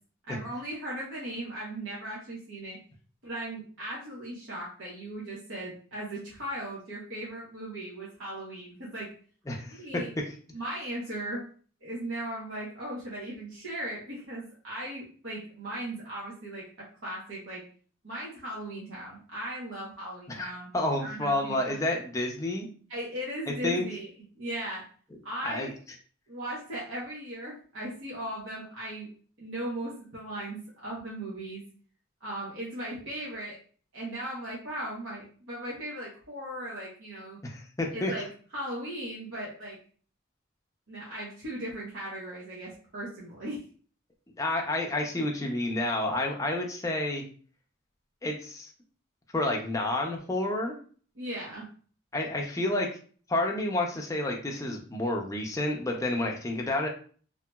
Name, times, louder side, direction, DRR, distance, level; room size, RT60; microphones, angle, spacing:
voice 1, 0.3-2.8 3.2-9.1 9.6-10.1 10.5-11.4 11.8-16.6 17.0-17.6 18.0-20.7 21.0-21.8 22.9-24.1 24.3-24.8 25.2-25.7 26.3-29.1 29.4-31.6 32.2-33.6 33.9-37.4 37.9-38.3 38.5-39.8 40.9-43.6 51.2-51.7, right 1 dB, 70° right, -6 dB, 0.9 m, -37 dB
voice 2, 9.5-9.8 20.3-22.7 23.6-23.9 25.4-25.7 37.4-38.1 44.4-47.2 48.2-48.7 49.3-50.8 52.1-52.9 53.3-56.9, left 2 dB, 15° left, 1 dB, 0.4 m, -29 dB
3.0 x 2.8 x 2.2 m, 0.43 s
head